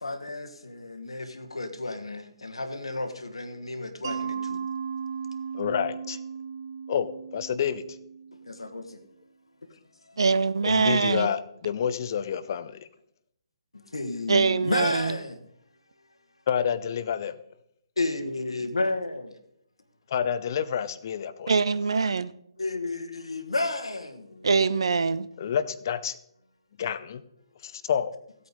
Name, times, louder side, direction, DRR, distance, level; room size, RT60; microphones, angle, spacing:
voice 1, 0.0-4.6 8.5-9.0 10.0-10.2 13.7-15.4 18.0-19.3 22.6-24.5, left 2 dB, 80° left, 1.4 m, -32 dB
Mallet percussion, 4.0-8.8, right 6 dB, 50° right, 0.9 m, -36 dB
voice 2, 5.5-6.2 6.9-7.8 10.6-12.8 16.5-17.3 20.1-21.6 25.4-26.2 26.8-27.2 27.6-28.2, left 8 dB, 45° left, 0.6 m, -28 dB
voice 3, 10.2-11.3 14.3-15.2 21.5-22.3 24.4-25.3, right 4 dB, 65° right, 0.6 m, -23 dB
15.5 x 8.6 x 4.1 m
figure-of-eight pair, 135°, 3 cm